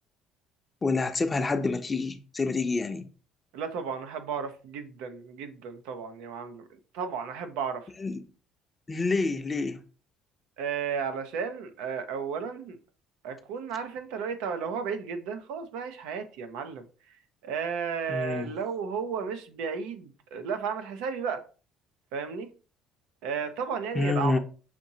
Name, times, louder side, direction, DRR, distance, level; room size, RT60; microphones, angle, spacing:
voice 1, 0.8-3.1 8.0-8.2 8.9-9.8 18.1-18.5 23.9-24.4, left 3 dB, 20° left, 0.6 m, -28 dB
voice 2, 3.5-6.6 6.9-7.9 10.6-12.8 13.2-16.9 17.4-21.4 22.1-22.5 23.2-24.4, right 6 dB, 85° right, 0.6 m, -33 dB
5.9 x 2.8 x 2.7 m
cardioid pair, 105°, 0 cm